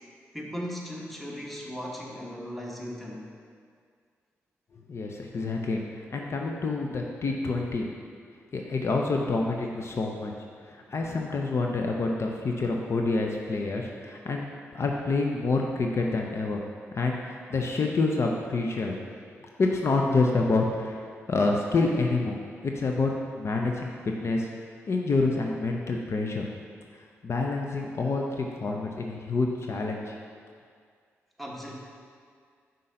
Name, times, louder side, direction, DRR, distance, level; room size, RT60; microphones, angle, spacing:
voice 1, 0.3-3.3 31.4-31.7, equal, ahead, -2 dB, 1.3 m, -37 dB
voice 2, 4.9-7.9 8.5-10.3 10.7-14.5 14.7-16.6 16.9-19.0 19.6-24.5 24.9-26.4 26.9-30.2, left 3 dB, 50° left, 1 dB, 0.6 m, -27 dB
5.5 x 3.8 x 5.5 m, 2.1 s
supercardioid pair, 50°, 6 cm